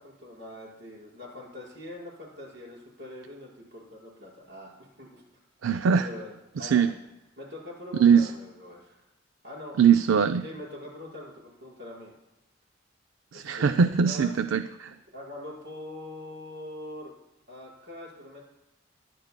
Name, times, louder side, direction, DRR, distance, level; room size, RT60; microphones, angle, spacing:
voice 1, 0.0-5.2 6.0-6.3 6.6-7.0 7.4-9.0 9.4-9.8 10.4-12.1 13.3-14.4 15.1-17.1 17.5-18.4, left 1 dB, 65° right, -4 dB, 5.3 m, -43 dB
voice 2, 5.6-6.1 6.6-6.9 8.0-8.3 9.8-10.5 13.3-14.9, right 7 dB, 85° right, 10 dB, 0.4 m, -21 dB
22.5 x 12.0 x 2.2 m, 0.94 s
head